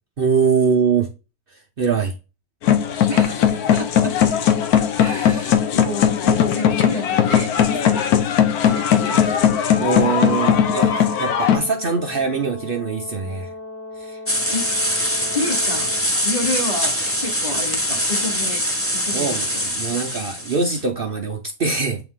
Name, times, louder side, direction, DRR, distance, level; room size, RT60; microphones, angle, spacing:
voice 1, 0.2-1.1 1.8-2.1 9.8-13.5 14.0-14.2 19.1-22.0, right 5 dB, 65° right, 0.5 m, -22 dB
sound 1, 2.6-11.6, left 9 dB, 65° left, 1.2 m, -18 dB
voice 2, 3.1-4.1 5.0-8.1 8.6-9.4 14.5-14.6 15.3-15.9 16.2-16.9 17.2-18.6 18.9-19.6, left 2 dB, 25° left, 1.1 m, -29 dB
Brass instrument, 9.7-16.1, left 2 dB, 50° left, 3.1 m, -36 dB
sound 2, 14.3-20.8, equal, 10° left, 0.7 m, -23 dB
7.9 x 3.3 x 3.7 m
omnidirectional pair, 1.9 m